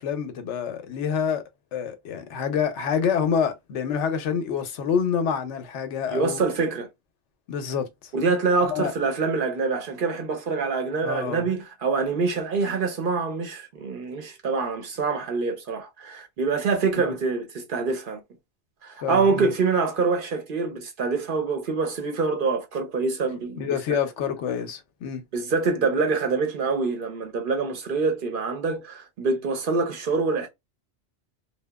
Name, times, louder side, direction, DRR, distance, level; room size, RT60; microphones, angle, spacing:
voice 1, 0.0-1.4 1.7-6.4 7.5-8.1 8.6-8.9 11.0-11.5 17.0-17.1 19.0-19.5 23.6-25.2, left 7 dB, 85° left, 0.9 m, -27 dB
voice 2, 6.1-6.9 8.1-18.2 18.8-23.6 23.9-24.0 25.3-30.5, right 4 dB, 55° right, 0.7 m, -25 dB
2.8 x 2.2 x 2.2 m
omnidirectional pair, 1.2 m